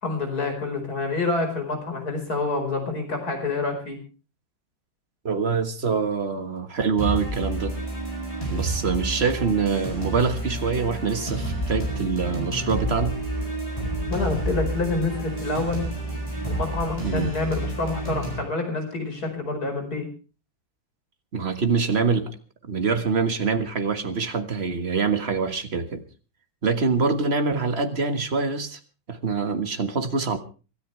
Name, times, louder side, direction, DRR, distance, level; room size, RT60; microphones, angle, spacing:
voice 1, 0.0-4.0 14.1-15.9 16.4-20.1, left 3 dB, 50° left, 4 dB, 5.4 m, -27 dB
voice 2, 5.2-7.8 8.5-13.2 17.0-17.3 21.3-22.3 22.7-26.0 26.6-28.8 29.1-30.4, right 5 dB, 35° right, 8 dB, 1.7 m, -25 dB
sound 1, 7.0-18.4, right 1 dB, 15° left, 8.0 m, -30 dB
25.5 x 13.0 x 3.3 m, 0.34 s
omnidirectional pair, 2.0 m